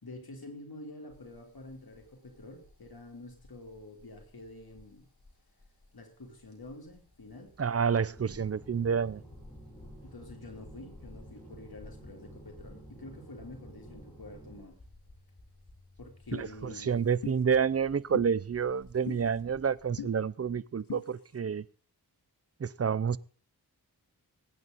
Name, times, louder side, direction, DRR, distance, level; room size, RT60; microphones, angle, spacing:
voice 1, 0.0-5.1 5.9-7.5 10.0-14.8 16.0-17.0, left 2 dB, 65° left, 3.3 m, -48 dB
sound 1, 1.1-20.1, left 2 dB, 50° left, 4.1 m, -56 dB
voice 2, 7.6-9.2 16.3-21.7 22.6-23.2, right 6 dB, 40° right, 0.5 m, -29 dB
sound 2, 8.2-14.6, right 2 dB, 15° left, 7.0 m, -52 dB
sound 3, 16.3-16.5 17.2-17.4 18.1-18.3 19.1-19.2 20.0-20.1 20.9-21.0, left 10 dB, 80° left, 0.7 m, -38 dB
21.0 x 9.3 x 4.0 m
wide cardioid pair, 75°, 39 cm